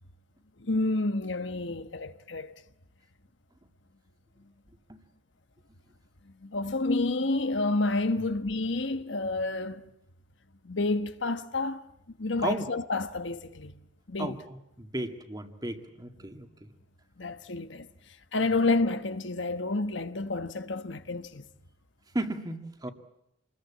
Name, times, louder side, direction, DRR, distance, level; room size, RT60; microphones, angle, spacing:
voice 1, 0.6-2.6 6.4-9.8 10.6-11.9 12.2-13.7 14.1-14.4 17.2-17.9 18.3-21.4, left 2 dB, 70° left, 1.3 m, -29 dB
voice 2, 14.2-16.7 22.1-22.9, right 1 dB, 20° right, 2.1 m, -35 dB
27.5 x 21.0 x 8.7 m
head